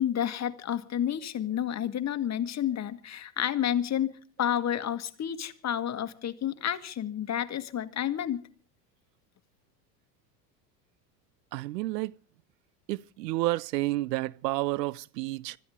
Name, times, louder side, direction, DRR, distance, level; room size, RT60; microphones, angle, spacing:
voice 1, 0.0-8.4, left 10 dB, 35° left, 1.6 m, -30 dB
voice 2, 11.5-12.1 12.9-15.6, right 18 dB, 80° right, 0.7 m, -30 dB
25.5 x 14.0 x 3.6 m
hypercardioid pair, 90°, 49 cm